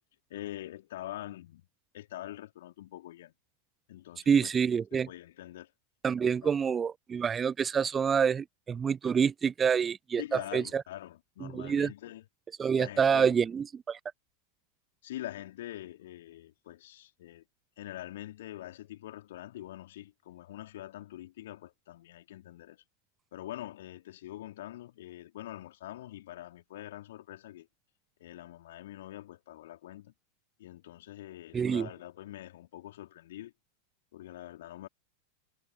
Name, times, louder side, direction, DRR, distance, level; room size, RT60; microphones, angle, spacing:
voice 1, 0.3-1.7 1.9-3.3 3.9-4.5 4.9-5.7 6.4-6.5 10.2-12.3 12.8-13.4 15.0-17.4 17.8-22.8 23.3-27.7 28.2-30.1 30.6-33.5 34.1-34.9, left 14 dB, 55° left, 2.8 m, -44 dB
voice 2, 4.3-5.1 6.0-10.8 11.4-11.9 12.6-14.0 31.5-31.9, right 6 dB, 20° right, 0.5 m, -27 dB
figure-of-eight pair, 90°, 0 cm